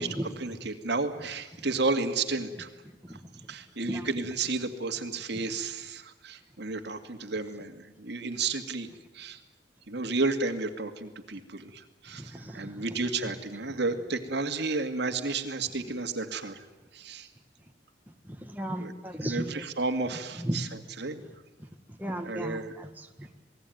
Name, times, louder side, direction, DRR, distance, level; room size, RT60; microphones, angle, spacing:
voice 1, 0.4-2.7 3.5-8.9 9.1-9.4 9.9-16.6 16.9-17.3 18.8-18.9 19.2-20.7 21.0-21.2 22.2-22.7, right 3 dB, 70° right, 6 dB, 2.3 m, -32 dB
voice 2, 12.1-12.8 13.2-13.3 18.2-19.6 20.4-20.6 21.6-21.7 22.0-23.3, equal, 10° right, 3 dB, 1.8 m, -36 dB
28.0 x 20.0 x 9.4 m, 1.1 s
head